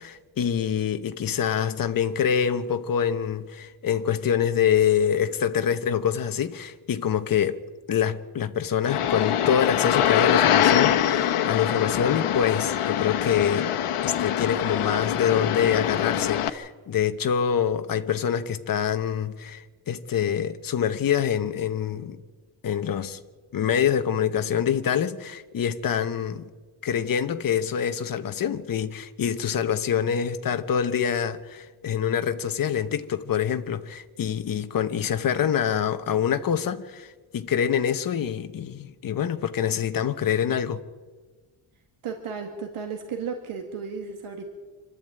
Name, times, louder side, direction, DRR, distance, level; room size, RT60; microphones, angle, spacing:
voice 1, 0.0-7.6 7.9-13.7 14.0-22.2 22.6-23.2 23.5-26.4 26.8-37.1 37.3-40.8, left 8 dB, 40° left, 1.0 m, -25 dB
sound 1, 8.8-16.5, left 10 dB, 80° left, 1.2 m, -24 dB
voice 2, 42.0-44.5, right 5 dB, 80° right, 2.2 m, -34 dB
26.0 x 12.5 x 8.9 m
wide cardioid pair, 175°, 49 cm